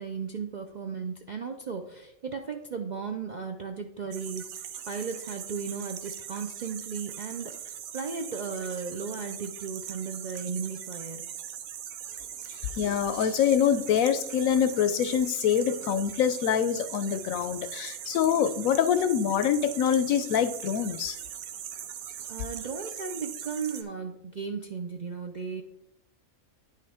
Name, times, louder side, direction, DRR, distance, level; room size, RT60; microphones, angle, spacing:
voice 1, 0.0-11.3 22.3-25.6, right 5 dB, 55° right, 3 dB, 0.5 m, -36 dB
sound 1, 4.1-23.8, right 9 dB, 75° right, 1.1 m, -40 dB
voice 2, 12.8-21.2, left 8 dB, 75° left, 12 dB, 1.0 m, -25 dB
9.9 x 5.6 x 3.5 m, 0.84 s
omnidirectional pair, 1.5 m